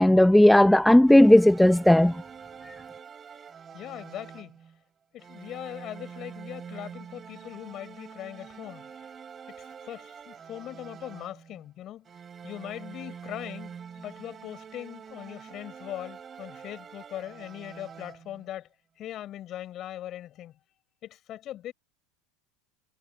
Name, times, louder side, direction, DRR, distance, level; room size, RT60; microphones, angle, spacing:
voice 1, 0.0-2.2 2.6-2.8, left 1 dB, 5° left, 0.6 m, -16 dB
sound 1, 1.1-4.8 5.2-11.7 12.1-18.5, right 7 dB, 20° right, 3.0 m, -45 dB
voice 2, 3.7-4.6 5.1-9.1 9.6-12.1 12.4-18.7 19.0-20.5 21.0-21.7, left 12 dB, 35° left, 6.2 m, -40 dB
supercardioid pair, 155°, 0 cm